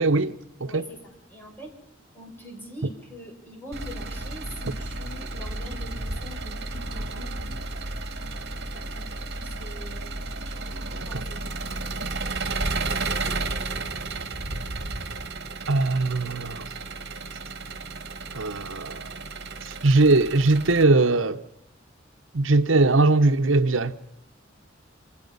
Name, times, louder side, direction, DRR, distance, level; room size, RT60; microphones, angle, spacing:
voice 1, 0.0-0.8 11.1-11.2 15.7-16.6 18.3-19.2 19.6-21.4 22.3-24.0, right 2 dB, 80° right, 1.0 m, -21 dB
voice 2, 0.7-1.7 2.1-7.4 8.7-9.0 9.3-10.2 10.5-10.6 10.9-11.4 12.0-12.3, equal, 10° left, 6.3 m, -44 dB
Engine, 3.7-20.8, right 3 dB, 55° right, 2.3 m, -33 dB
28.5 x 26.0 x 5.5 m
head